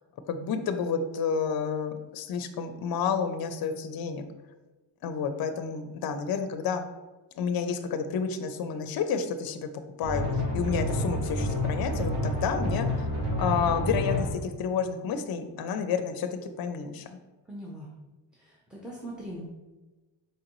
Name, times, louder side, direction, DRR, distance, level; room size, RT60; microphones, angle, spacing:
voice 1, 0.3-4.2 5.0-6.9 7.4-9.7 10.0-16.3 16.6-17.1, left 6 dB, 50° left, 8 dB, 0.5 m, -30 dB
sound 1, 10.0-14.3, left 1 dB, 60° right, 1.3 m, -29 dB
voice 2, 17.5-17.9 18.3-19.4, right 1 dB, ahead, -3 dB, 0.6 m, -41 dB
4.6 x 3.8 x 3.0 m, 1.2 s
cardioid pair, 120°, 48 cm